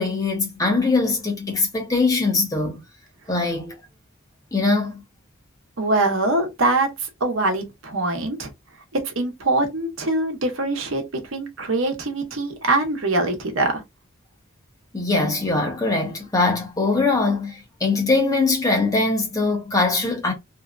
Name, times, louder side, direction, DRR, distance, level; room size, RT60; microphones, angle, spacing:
voice 1, 0.0-2.8 3.3-3.8 4.5-5.0 14.9-20.3, left 3 dB, 15° left, 0.8 m, -22 dB
voice 2, 5.8-8.5 8.9-11.0 11.3-13.8, right 2 dB, 90° right, 0.9 m, -23 dB
2.7 x 2.3 x 2.4 m
head